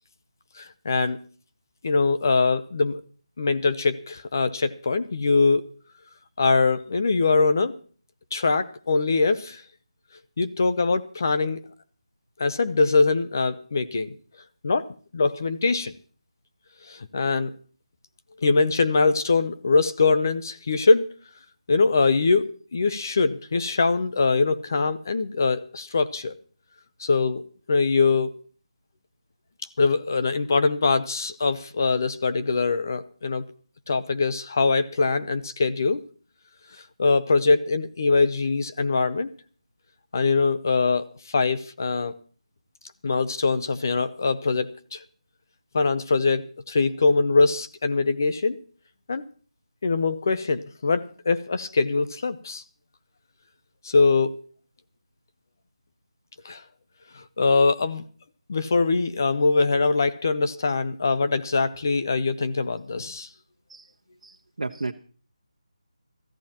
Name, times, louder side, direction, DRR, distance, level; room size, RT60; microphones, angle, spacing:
voice 1, 0.6-1.2 1.8-3.0 3.4-5.7 6.4-7.7 8.3-9.6 10.4-11.6 12.4-14.1 14.6-14.9 15.1-15.9 16.9-17.5 18.4-21.1 21.7-26.3 27.0-27.4 27.7-28.3 29.8-33.4 33.9-36.0 37.0-39.3 40.1-42.1 43.0-45.0 45.7-48.6 49.1-49.2 49.8-52.6 53.8-54.4 56.4-56.6 57.1-58.0 58.5-63.3, left 4 dB, 30° left, 11 dB, 0.6 m, -23 dB
voice 2, 64.2-64.9, right 3 dB, 80° right, 3 dB, 1.1 m, -33 dB
21.5 x 14.0 x 2.9 m, 0.42 s
figure-of-eight pair, 175°, 4 cm